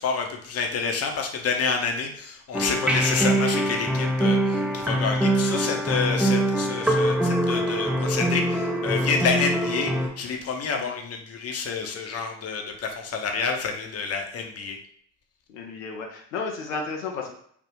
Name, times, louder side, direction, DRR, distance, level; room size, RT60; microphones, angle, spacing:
voice 1, 0.0-14.8, left 5 dB, 35° left, 3 dB, 0.7 m, -28 dB
sound 1, 2.5-10.1, right 1 dB, ahead, 0.5 m, -23 dB
voice 2, 15.5-17.3, left 4 dB, 85° left, 1 dB, 0.6 m, -33 dB
3.5 x 2.4 x 2.9 m, 0.62 s
hypercardioid pair, 55°, 40 cm